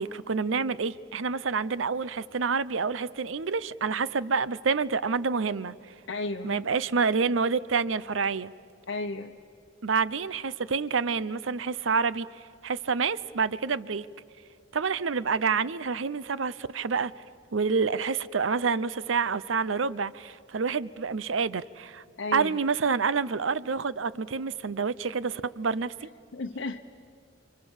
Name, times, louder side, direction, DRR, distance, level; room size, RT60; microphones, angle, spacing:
voice 1, 0.0-5.7 6.4-8.5 9.8-12.3 12.6-14.1 14.7-17.1 17.5-22.0 22.3-26.1, right 5 dB, 75° right, 18 dB, 0.7 m, -28 dB
voice 2, 6.1-6.6 8.9-9.4 22.2-22.5 26.3-26.8, left 3 dB, 70° left, 3 dB, 0.9 m, -33 dB
29.0 x 25.0 x 7.3 m, 2.5 s
head